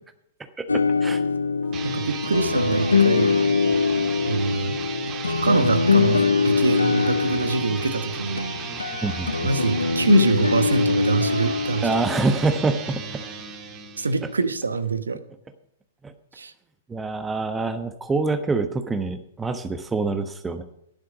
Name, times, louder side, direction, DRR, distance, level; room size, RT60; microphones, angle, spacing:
voice 1, 0.6-1.2 9.0-9.3 11.8-13.2 16.0-16.1 16.9-20.6, right 3 dB, 10° right, 8 dB, 1.1 m, -25 dB
sound 1, 0.7-13.2, left 5 dB, 90° left, 0.8 m, -23 dB
sound 2, 1.6-14.4, right 6 dB, 30° right, 1.7 m, -35 dB
voice 2, 1.8-3.3 4.2-4.7 5.3-8.5 9.4-11.9 14.0-15.2 16.4-16.5, right 4 dB, 85° right, 12 dB, 1.1 m, -24 dB
12.5 x 10.5 x 5.0 m, 0.78 s
figure-of-eight pair, 110°, 0 cm